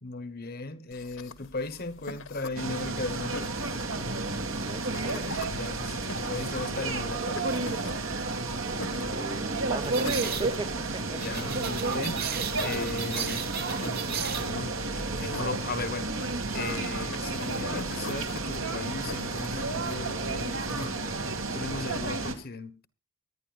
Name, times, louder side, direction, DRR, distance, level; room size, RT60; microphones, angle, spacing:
voice 1, 0.0-3.6 5.5-7.4 11.1-14.8 15.1-22.9, left 3 dB, 45° left, 1.2 m, -37 dB
sound 1, 0.9-20.9, left 3 dB, 65° left, 1.4 m, -44 dB
sound 2, 2.6-22.3, right 3 dB, 65° right, 2.3 m, -32 dB
voice 2, 4.1-5.4 9.1-11.5, right 2 dB, 20° right, 0.7 m, -39 dB
sound 3, 7.5-7.7 9.8-10.5 11.2-14.5, right 8 dB, 45° right, 1.5 m, -36 dB
24.0 x 11.0 x 2.5 m
head